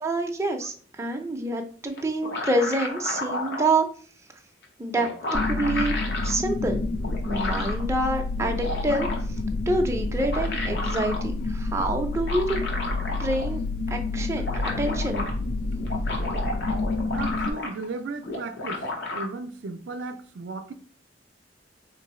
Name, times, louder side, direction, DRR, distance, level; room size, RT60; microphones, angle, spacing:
voice 1, 0.0-3.9 4.8-6.0 6.2-6.9 7.2-9.1 9.7-12.6 13.2-13.6 13.9-15.3, right 2 dB, 15° right, 0.5 m, -27 dB
sound 1, 2.0-3.7 4.6-4.7 5.0-6.3 7.0-7.8 8.4-9.4 10.0-11.2 12.1-13.6 13.9-14.0 14.2-15.3 15.8-17.9 18.2-19.3, left 2 dB, 65° left, 0.9 m, -32 dB
sound 2, 5.3-17.5, left 2 dB, 50° left, 0.3 m, -29 dB
voice 2, 17.1-18.9 19.1-20.7, right 3 dB, 75° right, 0.5 m, -35 dB
3.8 x 2.6 x 4.2 m
head